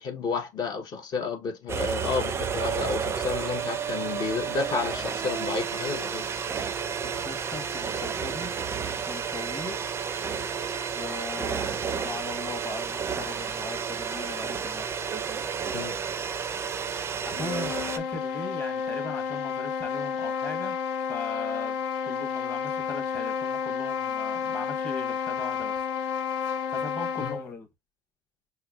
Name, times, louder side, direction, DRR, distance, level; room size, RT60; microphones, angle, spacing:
voice 1, 0.0-6.3 15.7-16.0 16.9-17.0 27.2-27.4, left 4 dB, 45° left, 0.8 m, -31 dB
sound 1, 1.7-18.0, right 6 dB, 25° right, 0.4 m, -31 dB
voice 2, 6.6-8.5 9.1-10.0 10.9-14.9 17.2-20.8 21.1-25.8 26.7-27.7, left 3 dB, 20° left, 1.0 m, -39 dB
sound 2, 17.2-27.5, left 6 dB, 75° left, 0.7 m, -31 dB
5.6 x 2.1 x 2.3 m
supercardioid pair, 115°, 10 cm